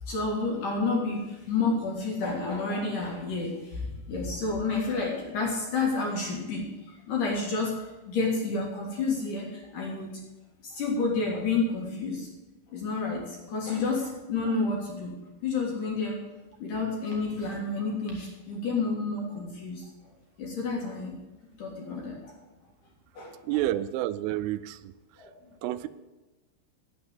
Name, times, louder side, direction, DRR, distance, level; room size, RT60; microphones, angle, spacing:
voice 1, 0.0-10.1 10.6-12.3 12.7-15.1 15.4-16.2 16.6-19.8 20.4-21.1 21.6-22.4 23.1-23.6 25.2-25.7, left 3 dB, 55° left, -1 dB, 2.8 m, -30 dB
voice 2, 23.4-24.9 25.6-25.9, right 14 dB, 90° right, 14 dB, 3.1 m, -29 dB
9.6 x 8.1 x 9.6 m, 1.1 s
omnidirectional pair, 5.6 m